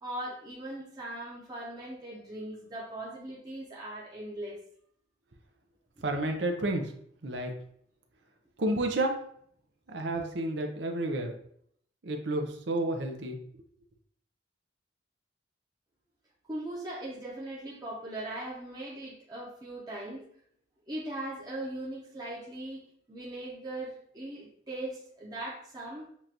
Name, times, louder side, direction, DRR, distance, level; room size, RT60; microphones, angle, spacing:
voice 1, 0.0-4.6 6.1-6.2 16.5-20.2 20.9-26.0, right 1 dB, 20° right, -6 dB, 0.8 m, -39 dB
voice 2, 6.0-6.9 7.2-7.5 8.6-9.2 9.9-11.3 12.0-13.4, right 1 dB, 70° right, 3 dB, 0.7 m, -30 dB
7.1 x 2.5 x 2.9 m, 0.66 s
head